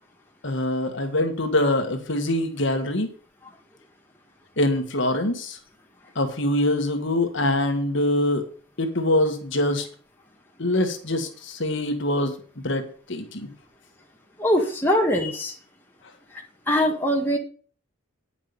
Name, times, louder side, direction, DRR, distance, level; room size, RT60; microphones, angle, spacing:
voice 1, 0.4-3.1 4.6-5.6 6.1-8.4 8.8-9.9 10.6-12.3 12.6-13.5, left 1 dB, 55° left, 5 dB, 1.6 m, -24 dB
voice 2, 14.4-15.6 16.7-17.4, equal, 10° left, -1 dB, 1.7 m, -22 dB
9.4 x 6.0 x 7.0 m, 0.42 s
head